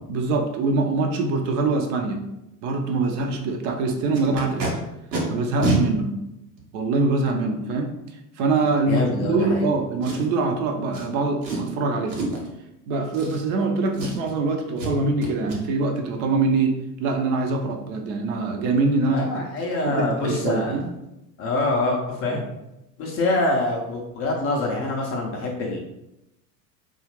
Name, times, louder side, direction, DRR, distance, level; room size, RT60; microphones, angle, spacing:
voice 1, 0.1-2.3 2.6-4.7 5.3-6.2 6.7-8.0 8.4-12.2 12.9-19.2 19.8-20.9, right 3 dB, 50° right, 3 dB, 0.6 m, -24 dB
Packing tape duct tape, 4.1-4.7 5.1-5.2 5.6-5.8 6.6-6.7 10.0-10.4 10.9-11.1 11.4-11.7 12.1-12.5 13.1-13.7 13.9-14.4 14.8-14.9 15.2-15.6 18.6-18.7 19.0-19.2 19.6-19.7 20.0-20.3 20.5-20.6, right 2 dB, 85° right, 0.9 m, -27 dB
voice 2, 8.9-9.7 19.1-20.8 21.4-22.4 23.0-25.8, left 2 dB, 30° left, 0 dB, 0.4 m, -25 dB
2.7 x 2.4 x 2.9 m, 0.89 s
hypercardioid pair, 90°, 50 cm